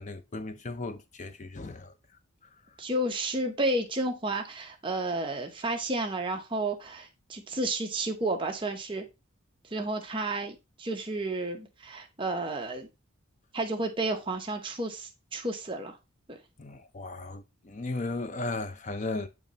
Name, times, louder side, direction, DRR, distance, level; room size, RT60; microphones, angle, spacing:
voice 1, 0.0-1.9 16.6-19.3, left 2 dB, 35° left, 0.5 m, -36 dB
voice 2, 2.8-9.0 9.7-12.9 13.5-16.0 16.3-16.4, right 2 dB, 25° right, 0.9 m, -31 dB
8.9 x 3.2 x 4.0 m
head